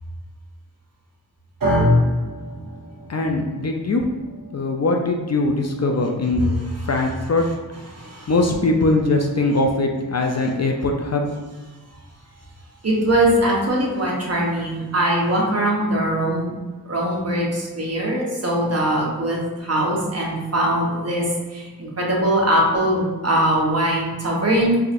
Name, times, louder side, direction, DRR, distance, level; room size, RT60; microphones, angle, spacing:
sound 1, 1.6-9.9, left 1 dB, 60° right, 1.0 m, -27 dB
voice 1, 3.1-4.0 4.5-7.5 8.3-11.3, left 2 dB, 45° left, 2 dB, 0.4 m, -21 dB
voice 2, 12.8-16.5 16.9-21.2 21.5-24.8, right 1 dB, 40° right, -3 dB, 1.0 m, -21 dB
4.7 x 2.5 x 2.5 m, 1.3 s
wide cardioid pair, 65°, 37 cm